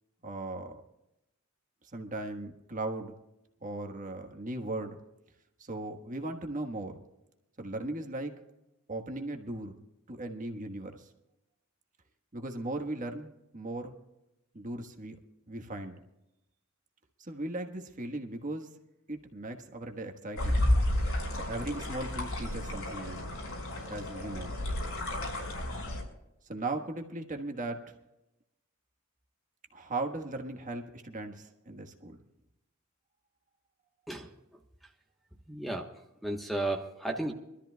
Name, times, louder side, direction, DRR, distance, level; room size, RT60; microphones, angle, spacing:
voice 1, 0.2-0.8 1.9-3.1 3.6-5.0 5.6-7.0 7.6-8.3 8.9-9.8 10.1-11.1 12.3-13.9 14.5-15.2 15.5-16.0 17.2-18.7 19.1-20.7 21.3-23.3 23.9-24.5 26.4-27.8 29.7-32.2, right 2 dB, 40° right, 4 dB, 1.3 m, -38 dB
sound 1, 20.4-26.0, left 1 dB, 75° left, 5.1 m, -31 dB
voice 2, 35.5-35.9 36.2-37.3, right 2 dB, ahead, 3 dB, 1.1 m, -33 dB
25.5 x 13.5 x 2.3 m, 0.89 s
head